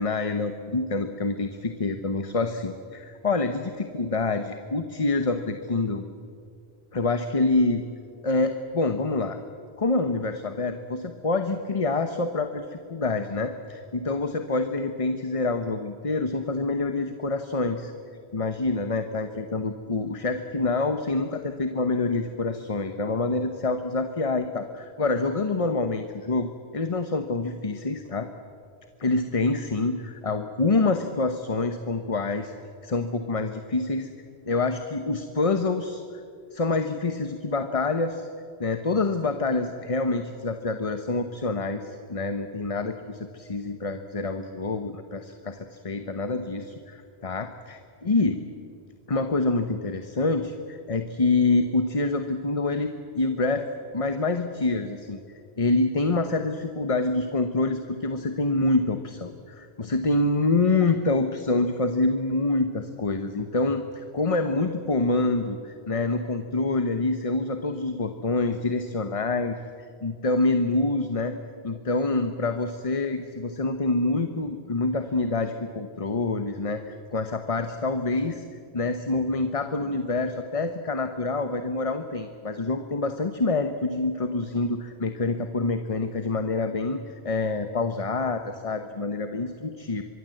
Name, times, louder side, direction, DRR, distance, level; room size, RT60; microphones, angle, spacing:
voice 1, 0.0-6.0 6.9-7.8 8.2-9.4 9.8-17.9 18.3-26.5 26.7-28.3 29.0-32.5 32.8-34.1 34.5-36.2 36.5-38.3 38.6-48.4 49.1-53.7 53.9-55.2 55.6-69.6 70.0-71.4 71.6-78.4 78.7-90.0, left 3 dB, 35° left, 7 dB, 1.0 m, -26 dB
25.0 x 22.5 x 7.8 m, 2.3 s
omnidirectional pair, 1.1 m